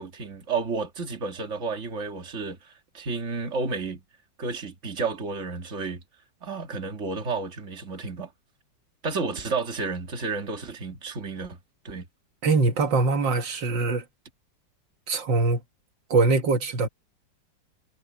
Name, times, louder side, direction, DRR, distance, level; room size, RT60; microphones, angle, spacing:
voice 1, 0.0-4.0 4.4-6.0 6.4-8.3 9.0-11.6 11.8-12.1, right 4 dB, 40° right, 2.4 m, -31 dB
voice 2, 12.4-14.0 15.1-15.6 16.1-16.9, right 3 dB, 75° right, 2.2 m, -22 dB
omnidirectional pair, 2.0 m